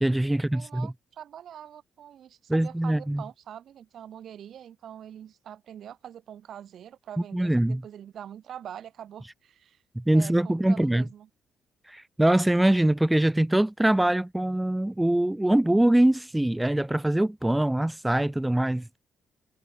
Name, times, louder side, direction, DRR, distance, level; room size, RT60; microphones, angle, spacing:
voice 1, 0.0-0.9 2.5-3.2 7.3-7.8 10.0-11.0 11.9-18.9, right 1 dB, 10° right, 0.4 m, -23 dB
voice 2, 0.5-9.8 10.1-11.3, right 9 dB, 65° right, 1.1 m, -44 dB
cardioid pair, 90°, 0 cm